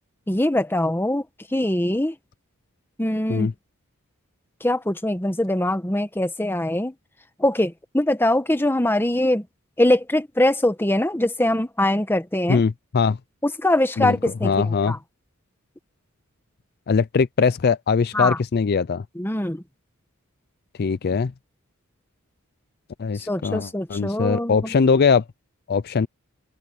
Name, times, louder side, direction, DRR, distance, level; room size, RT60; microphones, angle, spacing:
voice 1, 0.3-1.2 1.5-2.1 3.0-3.5 4.6-6.9 7.4-9.4 9.8-12.6 13.4-15.0 18.1-18.4 19.2-19.6 23.1-24.7, left 1 dB, 10° left, 1.1 m, -22 dB
voice 2, 12.5-13.2 14.0-14.2 14.4-14.9 16.9-19.0 20.8-21.3 23.0-25.2 25.7-26.1, left 5 dB, 45° left, 0.4 m, -21 dB
open air
head